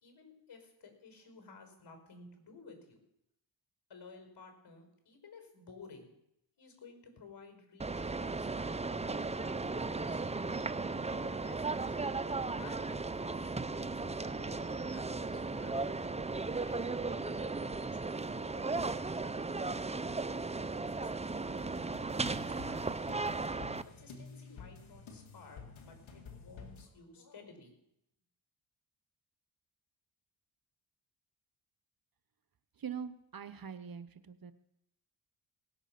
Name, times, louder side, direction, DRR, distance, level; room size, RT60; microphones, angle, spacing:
voice 1, 0.0-3.0 3.9-6.1 6.6-11.9 12.6-16.0 16.6-20.1 20.7-21.6 22.1-23.1 23.9-27.7, left 4 dB, 60° left, 5 dB, 5.0 m, -56 dB
sound 1, 7.8-23.8, right 3 dB, 15° right, 0.6 m, -36 dB
sound 2, 21.6-26.9, left 5 dB, 80° left, 2.3 m, -51 dB
voice 2, 32.8-34.5, right 7 dB, 50° right, 12 dB, 1.1 m, -43 dB
18.5 x 8.0 x 6.0 m, 0.80 s
cardioid pair, 60°, 46 cm